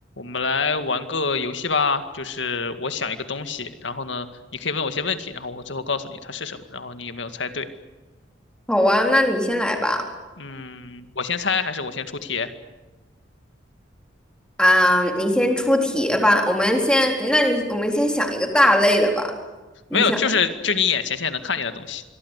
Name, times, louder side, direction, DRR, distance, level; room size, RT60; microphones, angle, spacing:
voice 1, 0.2-4.3 4.5-7.7 10.4-12.5 19.9-22.0, left 5 dB, 75° left, 9 dB, 2.1 m, -26 dB
voice 2, 8.7-10.0 14.6-19.3 19.9-20.2, left 1 dB, 5° left, 2 dB, 4.0 m, -19 dB
26.0 x 23.0 x 8.3 m, 1.2 s
head